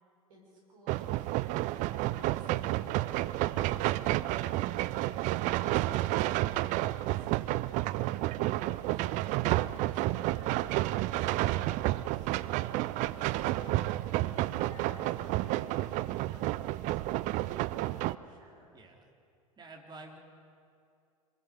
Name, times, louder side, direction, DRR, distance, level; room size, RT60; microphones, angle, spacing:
voice 1, 0.3-1.3 1.9-4.5 13.2-16.4 16.8-18.7, equal, 65° right, -2 dB, 7.1 m, -54 dB
sound 1, 0.9-18.2, right 17 dB, 40° right, 0.6 m, -30 dB
voice 2, 18.7-19.0 19.6-20.2, right 3 dB, 25° right, 1 dB, 3.4 m, -49 dB
26.0 x 21.5 x 5.2 m, 2.5 s
figure-of-eight pair, 80°, 19 cm